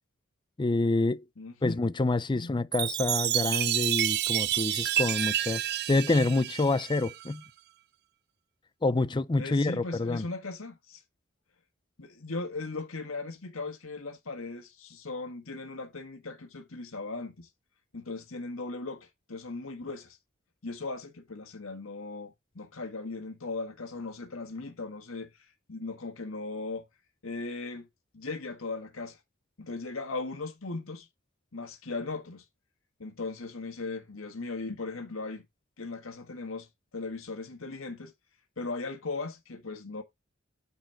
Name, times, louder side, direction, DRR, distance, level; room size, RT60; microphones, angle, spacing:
voice 1, 0.6-1.2 1.6-5.6 5.9-7.4 8.8-10.3, left 2 dB, 25° left, 0.5 m, -27 dB
voice 2, 1.4-1.8 2.3-2.5 9.4-11.0 12.0-17.5 17.9-20.2 20.6-26.9 27.2-27.9 28.1-29.2 29.6-31.1 31.5-32.4 33.0-35.4 35.8-36.7 36.9-38.1 38.6-40.0, left 3 dB, 85° left, 1.6 m, -38 dB
Chime, 2.7-7.3, right 12 dB, 55° right, 0.5 m, -29 dB
9.1 x 4.2 x 4.3 m
head